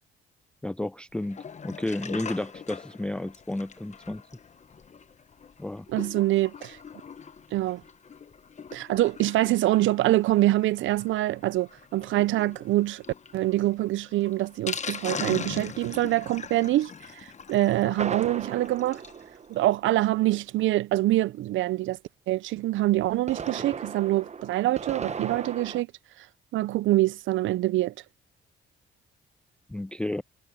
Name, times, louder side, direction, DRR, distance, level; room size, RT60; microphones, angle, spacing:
voice 1, 0.6-4.2 5.6-5.9 29.7-30.2, left 1 dB, 5° left, 0.4 m, -32 dB
Sink (filling or washing), 1.2-19.2 19.6-19.7 19.9-20.0 20.3-20.4, left 6 dB, 35° left, 1.0 m, -41 dB
voice 2, 5.9-6.8 7.5-7.8 8.7-13.0 13.3-16.9 17.5-19.0 19.5-22.0 22.3-25.9 26.5-27.9, right 16 dB, 75° right, 0.5 m, -25 dB
sound 1, 18.0-20.1 23.0-25.8, right 6 dB, 35° right, 1.0 m, -36 dB
cardioid pair, 90°, 20 cm